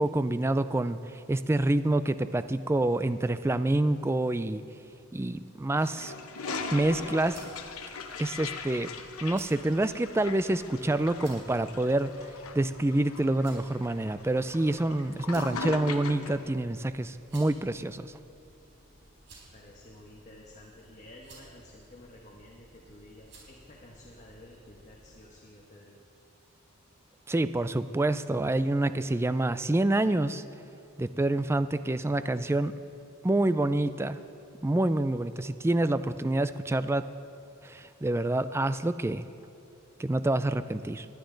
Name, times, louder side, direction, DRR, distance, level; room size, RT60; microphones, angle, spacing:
voice 1, 0.0-4.6 5.1-6.1 6.7-7.4 8.2-8.9 9.2-18.1 27.3-30.4 31.0-32.7 33.2-34.2 34.6-37.0 37.6-39.2 40.0-41.1, right 2 dB, 10° right, 13 dB, 0.3 m, -27 dB
Toilet flush, 5.8-16.4, left 4 dB, 85° left, 1.0 m, -40 dB
sound 1, 6.5-25.2, right 2 dB, 60° right, 4.3 m, -56 dB
voice 2, 19.5-26.0, left 1 dB, 35° left, -2 dB, 1.2 m, -52 dB
20.5 x 11.5 x 3.9 m, 2.6 s
head